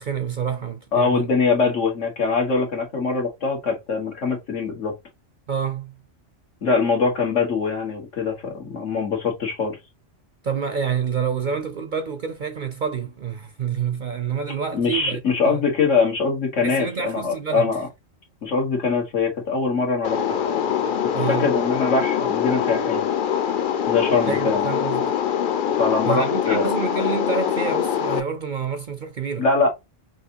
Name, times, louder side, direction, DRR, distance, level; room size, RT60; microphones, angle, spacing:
voice 1, 0.0-1.3 5.5-5.9 10.4-15.6 16.6-17.7 21.1-21.5 24.2-25.1 26.0-29.5, right 7 dB, 55° right, 0.6 m, -28 dB
voice 2, 0.9-4.9 6.6-9.8 14.7-17.9 18.4-20.2 20.5-20.6 21.2-23.0 23.9-24.6 25.8-26.7 29.4-29.7, left 4 dB, 75° left, 1.8 m, -23 dB
sound 1, 20.0-28.2, left 8 dB, 55° left, 0.6 m, -23 dB
5.7 x 2.7 x 2.9 m
omnidirectional pair, 1.3 m